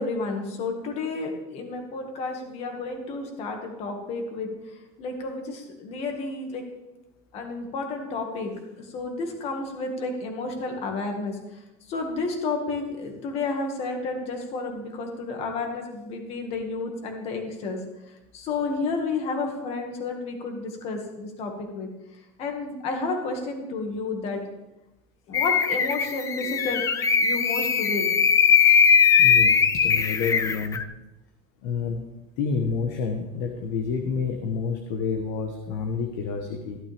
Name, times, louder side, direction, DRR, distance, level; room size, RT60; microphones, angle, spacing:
voice 1, 0.0-4.5 5.0-6.7 7.3-11.4 11.9-17.8 18.3-21.9 22.4-24.4 25.3-26.8 27.2-28.1 30.0-30.2, left 3 dB, 40° left, 3 dB, 2.0 m, -31 dB
sound 1, 25.3-30.8, left 7 dB, 20° left, 0.5 m, -20 dB
voice 2, 29.2-30.8 31.6-32.0 32.4-36.8, left 5 dB, 60° left, 3 dB, 1.3 m, -29 dB
15.5 x 11.5 x 3.5 m, 0.96 s
cardioid pair, 170°, 16 cm